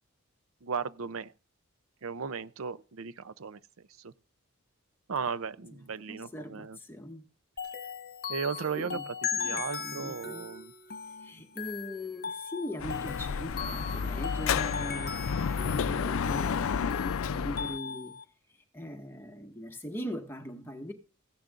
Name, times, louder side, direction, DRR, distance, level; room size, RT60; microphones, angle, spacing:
voice 1, 0.6-1.3 2.0-4.1 5.1-6.8 8.3-10.7, right 5 dB, 75° right, 0.6 m, -36 dB
voice 2, 6.1-7.3 8.6-9.1 9.4-10.5 11.1-18.1 18.7-20.9, equal, 10° left, 1.6 m, -40 dB
sound 1, 7.6-18.2, left 6 dB, 45° left, 1.4 m, -38 dB
Dog / Motorcycle, 12.8-17.8, left 6 dB, 75° left, 0.4 m, -31 dB
16.0 x 10.5 x 2.5 m
head